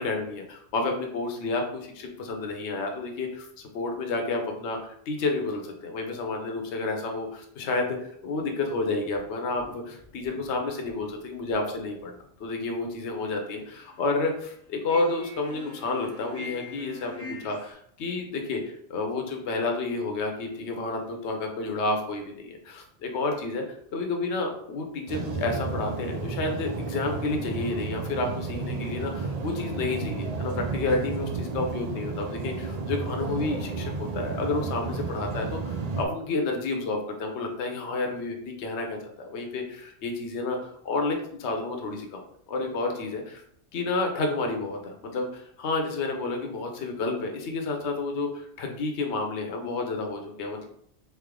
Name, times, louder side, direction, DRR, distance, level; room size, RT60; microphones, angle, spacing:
voice 1, 0.0-8.0 8.2-12.1 12.4-23.6 23.9-42.2 42.5-43.4 43.7-50.6, left 3 dB, 75° left, 3 dB, 1.0 m, -30 dB
sound 1, 9.2-12.8 13.2-14.1 14.9-17.7, left 2 dB, 15° left, 0.7 m, -45 dB
sound 2, 25.1-36.0, right 4 dB, 50° right, 0.5 m, -32 dB
3.7 x 3.4 x 3.7 m, 0.69 s
omnidirectional pair, 1.2 m